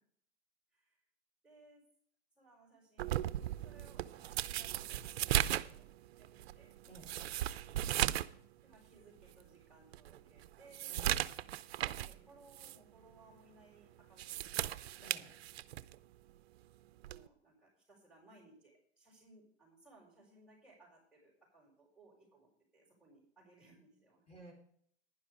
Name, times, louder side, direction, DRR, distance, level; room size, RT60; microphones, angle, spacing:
voice 1, 1.4-1.8 2.4-6.3 6.5-6.7 8.6-11.0 11.8-15.0 17.0-24.2, right 2 dB, ahead, -6 dB, 5.5 m, -63 dB
sound 1, 3.0-8.4 8.7-8.8 9.4-9.5 9.9-12.2 12.5-12.8 14.0-15.9 17.0-17.3, right 13 dB, 65° right, 0.6 m, -36 dB
voice 2, 6.8-7.2 10.9-11.2 15.0-15.3 24.3-24.5, right 2 dB, 20° left, -1 dB, 4.5 m, -55 dB
11.0 x 10.5 x 5.0 m, 0.63 s
hypercardioid pair, 110°, 34 cm